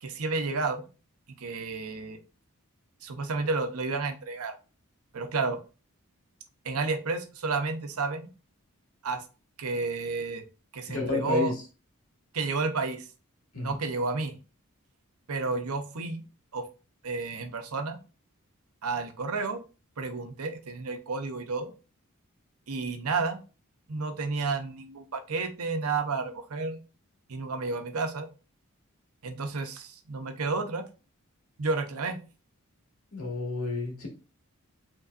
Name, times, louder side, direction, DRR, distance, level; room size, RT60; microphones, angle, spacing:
voice 1, 0.0-0.8 1.4-2.2 3.0-4.5 5.1-5.6 6.6-8.3 9.0-9.2 9.6-10.4 10.7-11.5 12.3-13.0 13.6-14.4 15.3-16.2 16.5-16.6 17.0-18.0 18.8-19.6 20.0-21.7 22.7-23.4 23.9-26.8 27.3-28.3 29.2-30.8 31.6-32.2, right 3 dB, 85° right, 8 dB, 0.8 m, -31 dB
voice 2, 10.9-11.5 13.5-13.8 33.1-34.1, left 3 dB, 75° left, 0 dB, 2.0 m, -31 dB
5.3 x 3.7 x 2.5 m, 0.32 s
head